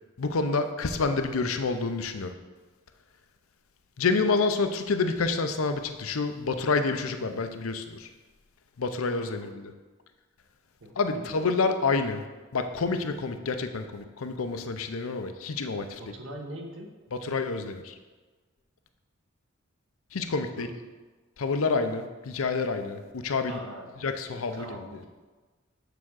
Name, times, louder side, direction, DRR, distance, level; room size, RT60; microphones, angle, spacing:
voice 1, 0.2-2.3 4.0-8.1 8.8-9.7 11.0-12.2 12.5-16.0 17.1-18.0 20.1-20.7 21.4-23.6 24.0-24.9, left 4 dB, 90° left, 7 dB, 0.6 m, -28 dB
voice 2, 9.1-9.5 10.8-11.4 16.0-16.9 20.6-20.8 23.4-23.9 24.3-25.1, right 1 dB, 70° right, 2 dB, 1.0 m, -42 dB
6.7 x 3.6 x 6.3 m, 1.3 s
head